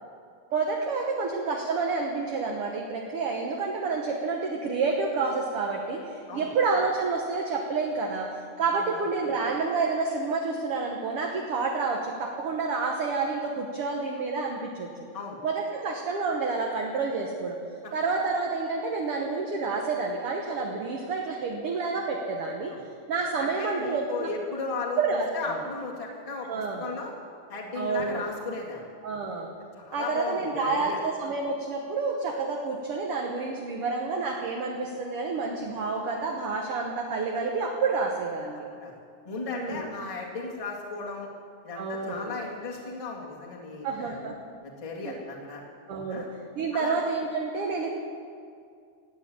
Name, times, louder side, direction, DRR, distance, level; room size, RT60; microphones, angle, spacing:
voice 1, 0.5-14.9 15.4-17.6 17.9-22.7 23.1-24.3 25.0-25.6 26.5-26.9 27.8-28.3 29.0-29.5 29.9-38.6 39.5-39.9 41.8-42.4 43.8-44.4 45.0-45.2 45.9-46.2 46.6-47.9, right 4 dB, 60° right, 0 dB, 1.7 m, -29 dB
voice 2, 23.4-27.1 27.5-28.8 29.7-31.0 38.7-38.9 39.3-41.3 41.6-44.2 44.6-45.6 46.1-46.3 46.7-46.9, left 3 dB, 15° left, -3 dB, 1.6 m, -36 dB
14.5 x 9.2 x 8.7 m, 2.3 s
omnidirectional pair, 3.6 m